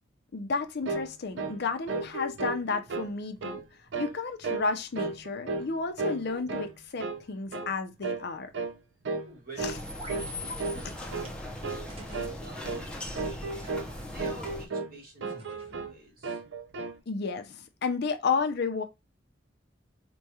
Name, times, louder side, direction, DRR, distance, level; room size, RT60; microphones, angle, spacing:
voice 1, 0.3-3.6 4.0-8.5 9.6-9.7 17.1-18.8, left 4 dB, 60° left, 0.6 m, -32 dB
sound 1, 0.9-1.1 1.4-1.6 1.9-3.1 3.4-3.7 3.9-4.2 4.4-4.7 5.0-5.7 6.0-6.7 7.0-7.2 7.5-7.7 8.0-8.3 8.5-8.8 9.1-9.3 9.6-9.8 10.1-10.3 10.6-10.8 11.1-11.3 11.6-11.9 12.1-12.4 12.6-12.8 13.2-13.9 14.2-14.9 15.2-15.9 16.2-17.0, right 3 dB, 65° right, 0.5 m, -34 dB
voice 2, 9.3-9.8 10.0-11.0 11.5-16.4, right 1 dB, 50° right, 1.5 m, -49 dB
sound 2, 9.6-14.7, left 1 dB, 5° left, 0.6 m, -39 dB
sound 3, 10.0-10.2 10.5-10.6 11.2-11.3 11.9-12.4 13.6-14.1 15.2-15.9, right 2 dB, 30° right, 0.8 m, -47 dB
4.6 x 2.3 x 2.7 m
head